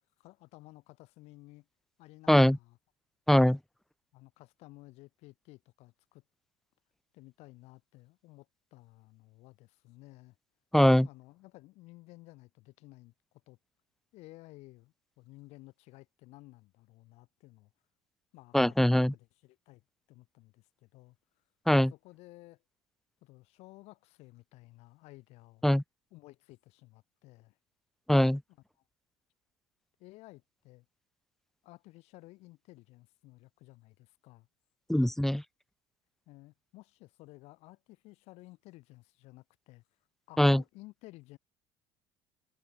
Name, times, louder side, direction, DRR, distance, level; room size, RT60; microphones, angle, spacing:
voice 1, 0.2-1.7 2.0-2.8 4.1-6.2 7.1-10.4 11.0-13.1 13.5-13.6 14.1-17.7 18.3-19.8 20.1-21.2 21.8-22.6 23.2-25.7 26.1-27.6 30.0-30.9 31.6-34.5 36.3-39.8 40.3-41.4, left 20 dB, 70° left, 5.4 m, -54 dB
voice 2, 3.3-3.6 10.7-11.1 18.5-19.1 21.7-21.9 25.6-25.8 28.1-28.4 34.9-35.4 40.4-40.6, left 1 dB, 5° left, 0.7 m, -22 dB
supercardioid pair, 85°, 11 cm